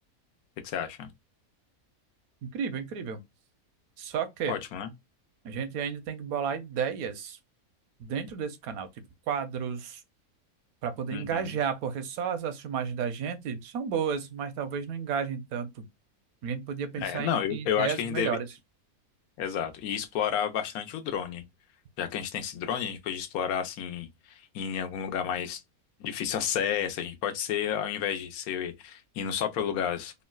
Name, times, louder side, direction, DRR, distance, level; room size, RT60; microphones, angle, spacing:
voice 1, 0.6-1.1 4.5-4.9 11.1-11.5 17.0-18.4 19.4-21.4 22.0-25.6 26.0-30.2, left 9 dB, 85° left, 1.1 m, -31 dB
voice 2, 2.4-3.2 4.0-4.6 5.4-7.4 8.0-8.9 9.3-10.0 10.8-15.8 16.4-18.5, right 7 dB, 80° right, 1.1 m, -32 dB
3.8 x 2.1 x 2.2 m
omnidirectional pair, 1.5 m